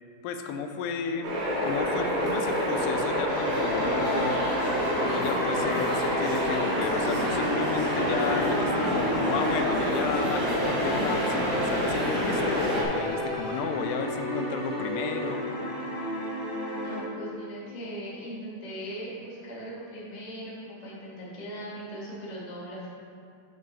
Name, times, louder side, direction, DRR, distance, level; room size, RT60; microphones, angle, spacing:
voice 1, 0.2-1.3 1.6-4.4 4.9-15.4, left 5 dB, 90° left, 6 dB, 2.7 m, -32 dB
sound 1, 1.2-12.8, equal, 60° right, 3.1 m, -27 dB
sound 2, 3.3-17.0, equal, 45° left, 2.1 m, -33 dB
voice 2, 8.2-9.0 16.7-22.9, equal, 60° left, -8 dB, 0.4 m, -39 dB
10.0 x 6.6 x 3.4 m, 2.5 s
omnidirectional pair, 4.6 m